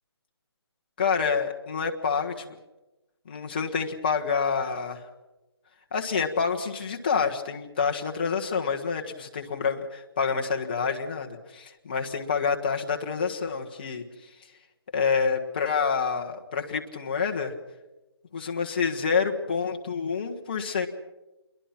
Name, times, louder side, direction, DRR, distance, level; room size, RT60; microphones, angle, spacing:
voice 1, 1.0-2.6 3.2-5.1 5.9-14.0 14.9-17.5 18.3-20.9, left 5 dB, 20° left, 2 dB, 1.4 m, -27 dB
28.0 x 22.5 x 6.0 m, 1.1 s
hypercardioid pair, 175°, 14 cm